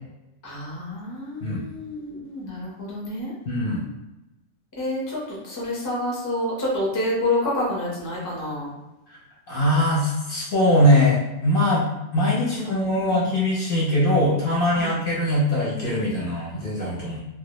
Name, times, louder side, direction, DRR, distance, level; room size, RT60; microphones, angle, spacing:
voice 1, 0.4-3.3 4.8-8.7 12.4-13.3 14.7-15.0, left 1 dB, 25° left, -5 dB, 0.4 m, -28 dB
voice 2, 3.5-3.9 9.5-11.9 12.1-17.2, left 1 dB, 55° left, -6 dB, 0.7 m, -21 dB
2.1 x 2.0 x 2.9 m, 1.0 s
omnidirectional pair, 1.3 m